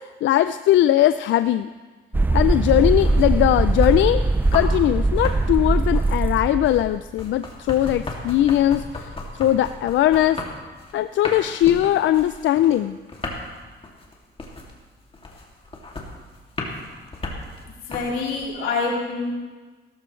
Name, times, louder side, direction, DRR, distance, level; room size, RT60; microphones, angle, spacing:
voice 1, 0.2-1.7 2.3-4.2 4.5-8.8 9.3-10.4 10.9-13.0, left 13 dB, 70° left, 12 dB, 0.4 m, -19 dB
sound 1, 2.1-7.0, right 2 dB, 10° right, 0.4 m, -21 dB
sound 2, 2.6-4.8 5.1-18.5, left 2 dB, 30° left, 2.5 m, -35 dB
voice 2, 17.9-19.3, left 4 dB, 90° left, -4 dB, 3.7 m, -26 dB
17.0 x 14.0 x 3.2 m, 1.3 s
cardioid pair, 90°, 20 cm